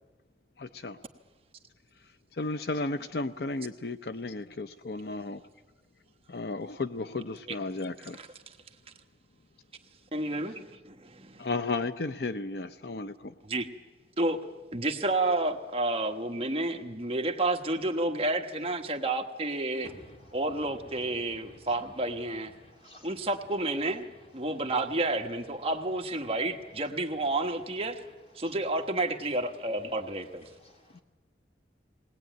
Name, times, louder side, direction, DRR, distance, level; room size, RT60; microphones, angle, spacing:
voice 1, 0.6-1.0 2.4-5.4 6.3-8.2 11.4-13.3 30.9-31.0, left 3 dB, 65° left, 0.7 m, -34 dB
voice 2, 8.2-8.6 10.1-11.5 13.4-13.7 14.2-14.4 14.7-19.9 20.3-22.5 23.0-24.1 24.3-28.0 28.3-30.5, right 2 dB, 35° right, 1.3 m, -30 dB
voice 3, 19.8-20.4 20.8-21.6 22.5-23.3 30.6-31.0, left 1 dB, 35° left, 3.1 m, -52 dB
20.5 x 19.5 x 9.2 m
head